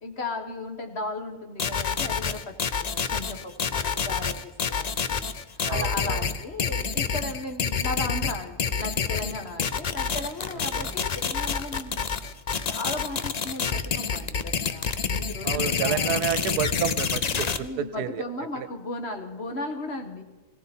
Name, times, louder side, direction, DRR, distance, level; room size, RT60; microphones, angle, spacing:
voice 1, 0.0-12.2 12.6-16.3 17.6-20.2, left 2 dB, 45° left, 5 dB, 1.5 m, -36 dB
sound 1, 1.6-17.6, left 6 dB, 85° left, 0.3 m, -27 dB
voice 2, 5.6-6.3 10.7-10.9 15.4-18.2 18.6-18.7, right 10 dB, 80° right, 14 dB, 1.2 m, -30 dB
18.0 x 17.0 x 4.4 m, 1.2 s
omnidirectional pair, 1.6 m